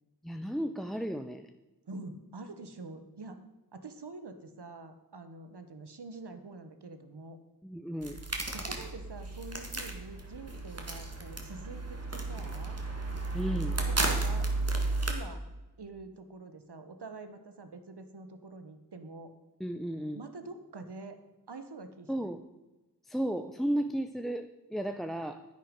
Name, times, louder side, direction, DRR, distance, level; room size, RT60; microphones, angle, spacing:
voice 1, 0.2-1.5 7.6-8.2 13.3-13.8 19.6-20.2 22.1-22.4 23.0-25.5, right 1 dB, ahead, 8 dB, 0.5 m, -34 dB
voice 2, 1.9-3.4 3.7-7.4 8.5-12.8 13.9-14.5 15.1-15.4 15.8-19.3 20.1-21.2 21.5-22.3, right 3 dB, 80° right, 9 dB, 1.2 m, -46 dB
sound 1, 8.0-15.1, right 2 dB, 40° right, 1.8 m, -33 dB
10.0 x 9.4 x 5.2 m, 1.1 s
wide cardioid pair, 60°, 40 cm